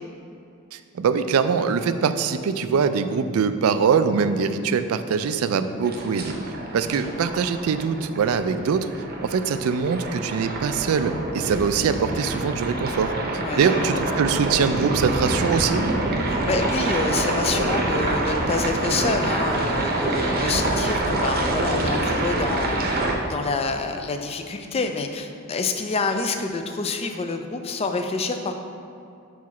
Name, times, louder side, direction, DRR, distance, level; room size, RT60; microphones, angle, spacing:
voice 1, 0.7-6.4 6.7-8.9 9.2-13.1 13.6-15.8, right 6 dB, 70° right, 11 dB, 0.3 m, -23 dB
sound 1, 5.8-23.1, right 2 dB, 45° right, 0.7 m, -26 dB
voice 2, 13.4-14.0 16.3-23.0 23.3-28.5, left 3 dB, 25° left, 6 dB, 0.3 m, -27 dB
4.7 x 4.1 x 5.8 m, 2.6 s
head